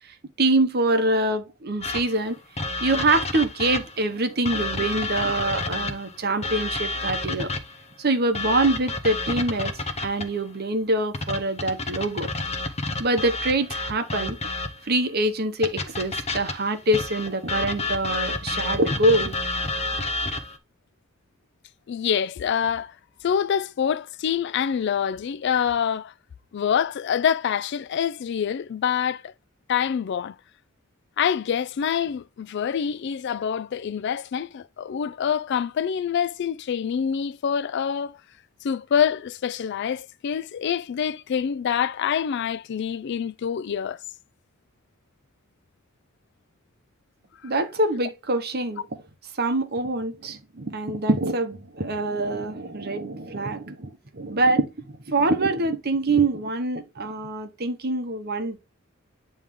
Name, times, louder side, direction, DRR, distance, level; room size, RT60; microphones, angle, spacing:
voice 1, 0.4-2.4 2.8-7.5 8.0-9.7 10.0-12.3 13.0-14.4 14.9-19.3 47.4-48.8 49.4-58.6, right 2 dB, 50° right, 1.0 m, -24 dB
sound 1, 1.8-4.0 4.5-7.8 8.4-10.4 11.1-14.9 15.6-20.6, left 3 dB, 30° left, 0.8 m, -30 dB
voice 2, 21.9-22.9 23.2-26.1 26.5-29.3 29.7-30.4 31.2-38.2 38.6-44.0 47.4-47.5, left 8 dB, 55° left, 0.3 m, -26 dB
9.0 x 3.2 x 3.5 m
head